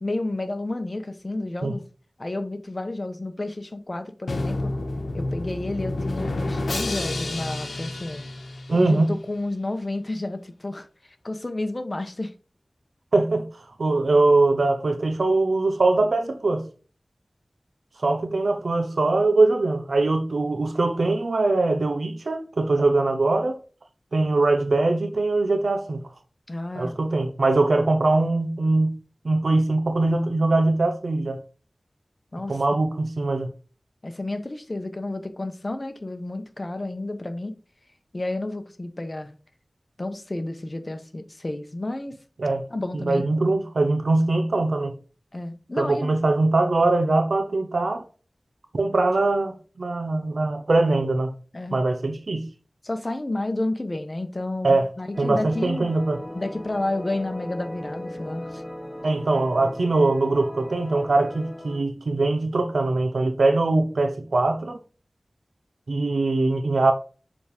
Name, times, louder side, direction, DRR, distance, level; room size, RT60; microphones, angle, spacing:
voice 1, 0.0-1.8 2.2-4.7 5.1-8.3 8.7-10.9 11.2-12.3 26.5-27.0 32.3-32.8 34.0-37.5 38.1-39.4 40.0-42.2 42.7-43.2 45.3-46.2 51.5-51.8 52.8-55.9 56.3-58.6, left 2 dB, 40° left, 1.0 m, -31 dB
Drum, 4.3-9.1, left 2 dB, 90° left, 1.0 m, -29 dB
voice 2, 8.7-9.1 13.1-13.5 13.8-16.6 18.0-23.6 24.1-26.0 26.7-29.0 29.2-31.4 32.5-33.5 42.4-42.6 43.0-44.9 45.8-48.0 48.7-51.3 51.7-52.5 54.6-54.9 55.2-56.2 59.0-64.8 65.9-66.9, right 2 dB, 80° right, 0.9 m, -22 dB
sound 1, 55.1-61.8, left 1 dB, 20° left, 3.0 m, -38 dB
7.0 x 3.7 x 4.9 m
wide cardioid pair, 50°, 0 cm